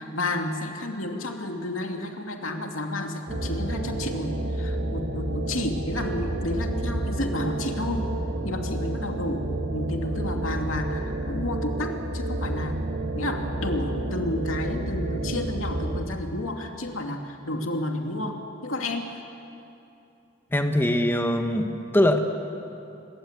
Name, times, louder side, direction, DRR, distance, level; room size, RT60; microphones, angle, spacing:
voice 1, 0.0-8.1 8.4-12.8 13.1-19.1, left 1 dB, 85° left, 3 dB, 2.7 m, -31 dB
sound 1, 3.3-16.0, right 1 dB, 75° right, 2.3 m, -30 dB
voice 2, 20.5-22.2, left 1 dB, 10° left, 5 dB, 1.3 m, -22 dB
26.0 x 22.5 x 8.3 m, 2.7 s
head